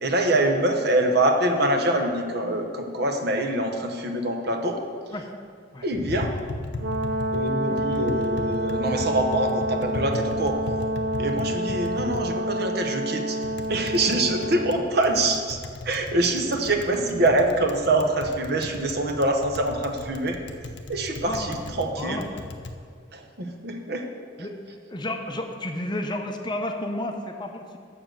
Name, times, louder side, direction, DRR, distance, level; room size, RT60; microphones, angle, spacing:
voice 1, 0.0-4.8 5.8-6.3 7.3-10.6 11.2-13.4 13.7-20.4 20.9-22.2 23.1-24.1, right 1 dB, 55° right, 4 dB, 0.9 m, -25 dB
Tap, 5.9-22.7, left 2 dB, 60° left, 0.7 m, -37 dB
Brass instrument, 6.8-14.8, right 1 dB, 80° right, 0.6 m, -28 dB
voice 2, 21.2-22.3 24.4-24.6 24.9-27.8, left 1 dB, 25° left, 4 dB, 0.6 m, -32 dB
7.2 x 6.3 x 7.6 m, 2.1 s
head